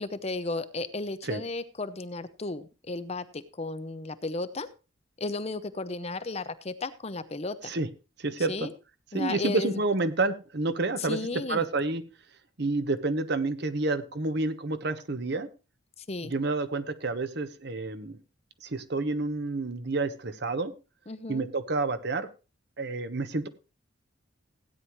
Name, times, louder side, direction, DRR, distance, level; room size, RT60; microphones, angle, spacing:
voice 1, 0.0-4.7 5.2-7.7 8.4-8.7 9.1-9.8 11.0-11.7 16.0-16.3 21.1-21.5, left 3 dB, 30° left, 12 dB, 0.8 m, -34 dB
voice 2, 8.2-8.7 9.1-11.2 11.5-12.0 12.6-15.5 16.2-18.2 18.6-20.7 21.3-22.3 22.8-23.5, right 3 dB, 55° right, 10 dB, 1.1 m, -29 dB
16.0 x 9.6 x 3.1 m, 0.31 s
head